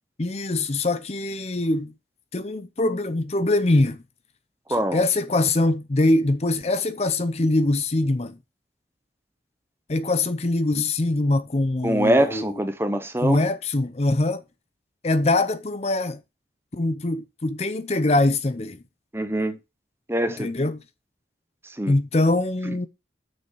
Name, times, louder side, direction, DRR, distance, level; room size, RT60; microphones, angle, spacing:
voice 1, 0.2-1.9 2.3-4.0 4.9-8.4 9.9-12.5 13.2-14.4 15.0-16.2 16.7-18.8 20.4-20.8 21.9-22.9, left 2 dB, 35° left, 0.6 m, -23 dB
voice 2, 11.8-13.4 19.1-19.6 20.1-20.5 21.6-22.0 22.7-22.8, right 1 dB, 15° right, 0.8 m, -23 dB
7.0 x 6.4 x 6.2 m
head